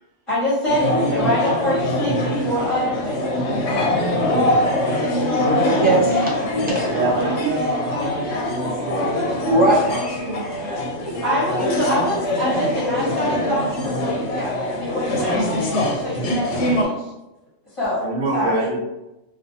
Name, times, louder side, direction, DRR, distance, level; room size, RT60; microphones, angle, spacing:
voice 1, 0.3-3.1 11.2-17.1 17.7-18.1 18.3-18.7, left 1 dB, 30° left, -8 dB, 0.7 m, -25 dB
sound 1, 0.7-16.9, left 1 dB, 65° left, 0.8 m, -23 dB
voice 2, 5.7-6.8 7.4-7.5 9.5-10.6 11.2-11.7, right 1 dB, 10° right, -7 dB, 0.4 m, -21 dB
voice 3, 6.9-9.1 18.0-18.8, right 2 dB, 70° right, -5 dB, 1.0 m, -26 dB
2.6 x 2.3 x 2.6 m, 0.96 s
omnidirectional pair, 1.3 m